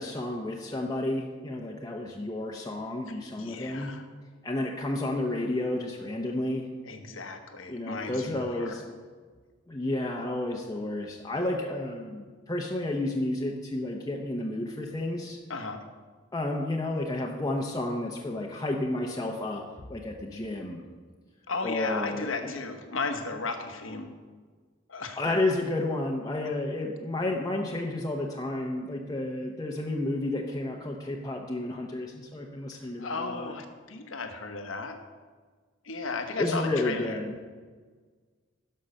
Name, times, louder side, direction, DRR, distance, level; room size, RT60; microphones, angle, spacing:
voice 1, 0.0-3.9 4.4-6.7 7.7-8.8 9.7-15.4 16.3-19.6 19.9-20.8 21.6-22.5 25.2-33.5 36.4-37.3, left 2 dB, 20° left, -1 dB, 0.8 m, -31 dB
voice 2, 3.4-4.0 6.9-8.8 15.5-15.8 21.5-24.1 24.9-25.2 33.0-35.0 35.8-37.2, left 3 dB, 90° left, 6 dB, 1.2 m, -35 dB
11.5 x 5.5 x 6.5 m, 1.5 s
head